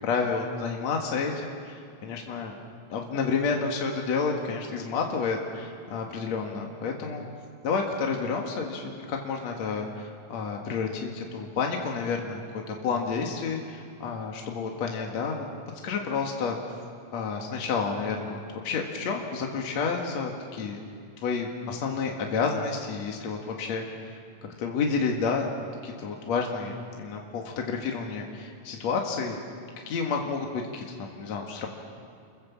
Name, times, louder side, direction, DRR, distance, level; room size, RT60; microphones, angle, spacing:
voice 1, 0.0-2.5 2.9-7.3 7.6-12.4 12.7-15.5 15.8-16.6 17.1-20.8 21.2-24.2 24.6-29.4 29.9-31.7, left 5 dB, 60° left, 1 dB, 3.0 m, -30 dB
30.0 x 23.0 x 7.3 m, 2.3 s
omnidirectional pair, 3.5 m